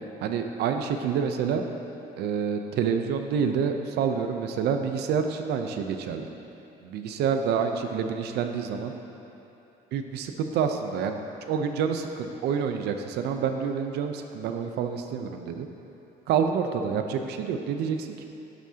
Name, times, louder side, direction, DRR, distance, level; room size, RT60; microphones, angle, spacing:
voice 1, 0.2-1.6 2.2-6.3 6.8-8.9 9.9-11.2 11.5-15.7 16.3-18.3, right 6 dB, 75° right, 6 dB, 0.7 m, -28 dB
11.5 x 9.2 x 2.9 m, 2.9 s
cardioid pair, 110°, 17 cm